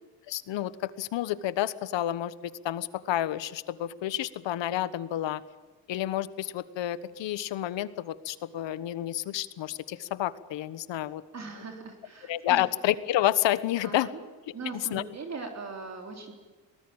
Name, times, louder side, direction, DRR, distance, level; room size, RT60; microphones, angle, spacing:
voice 1, 0.3-5.4 5.9-11.2 12.3-14.1 14.7-15.0, left 13 dB, 80° left, 15 dB, 1.4 m, -30 dB
voice 2, 11.3-12.6 13.8-14.2 14.5-16.3, right 4 dB, 35° right, 4 dB, 3.6 m, -40 dB
24.0 x 19.5 x 8.9 m, 1.3 s
cardioid pair, 155°, 43 cm